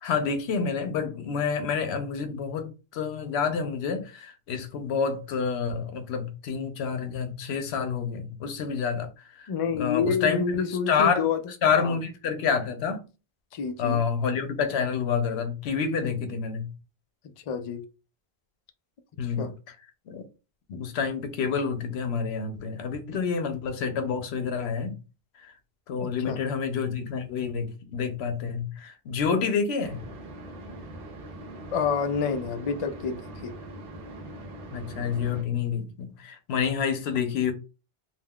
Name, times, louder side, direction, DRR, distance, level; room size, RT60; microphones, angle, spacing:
voice 1, 0.0-9.1 9.4-9.5 9.7-10.4 10.9-11.3 11.6-13.0 13.8-16.7 19.2-19.5 20.1-20.2 20.7-25.0 25.4-25.5 25.9-30.1 34.7-37.5, left 6 dB, 90° left, 0.9 m, -28 dB
voice 2, 9.5-11.4 11.8-11.9 13.5-14.0 16.0-16.1 17.5-17.8 19.2-19.5 26.0-26.4 31.7-33.5, left 6 dB, 55° left, 0.3 m, -28 dB
sound 1, 29.8-35.4, right 1 dB, 65° right, 0.9 m, -42 dB
3.5 x 2.3 x 2.2 m
omnidirectional pair, 1.1 m